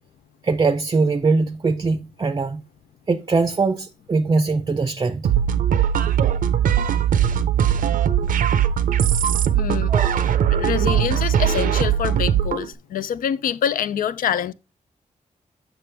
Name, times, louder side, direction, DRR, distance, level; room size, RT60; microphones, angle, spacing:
voice 1, 0.4-2.6 3.1-5.3 9.9-10.2, right 4 dB, 30° right, 0.4 m, -21 dB
sound 1, 5.2-12.7, right 9 dB, 80° right, 0.5 m, -20 dB
voice 2, 9.5-9.9 10.5-14.5, left 9 dB, 80° left, 0.4 m, -25 dB
6.7 x 6.0 x 3.3 m
cardioid pair, 55°, 14 cm